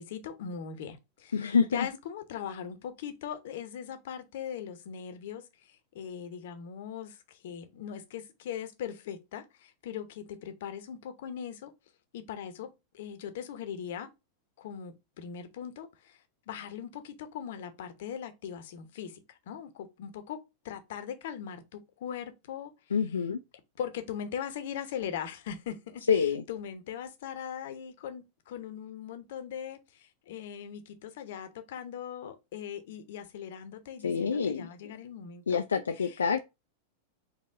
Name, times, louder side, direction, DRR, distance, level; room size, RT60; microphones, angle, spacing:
voice 1, 0.0-11.7 12.1-14.1 14.6-20.4 20.6-22.7 23.8-35.6 36.0-36.4, left 8 dB, 55° left, 0.8 m, -40 dB
voice 2, 1.3-1.9 22.9-23.4 26.1-26.4 34.0-34.7 35.5-36.4, left 6 dB, 70° left, 0.3 m, -27 dB
4.2 x 3.0 x 3.7 m
figure-of-eight pair, 90°, 0 cm